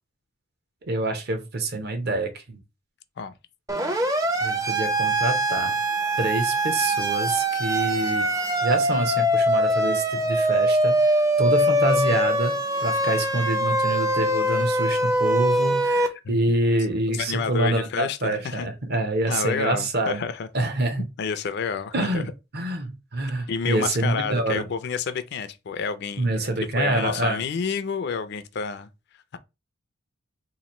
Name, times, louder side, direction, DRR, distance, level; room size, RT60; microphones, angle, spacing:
voice 1, 0.9-2.6 4.4-5.8 6.2-8.3 8.6-12.5 12.8-20.2 20.5-21.0 21.9-22.3 22.5-24.6 26.2-27.4, right 2 dB, 50° right, 0.8 m, -26 dB
Siren, 3.7-16.1, right 1 dB, 15° right, 0.5 m, -23 dB
voice 2, 17.1-18.7 19.3-20.5 21.2-22.2 23.5-26.5 26.7-28.9, left 5 dB, 55° left, 0.4 m, -29 dB
3.0 x 2.5 x 4.1 m
head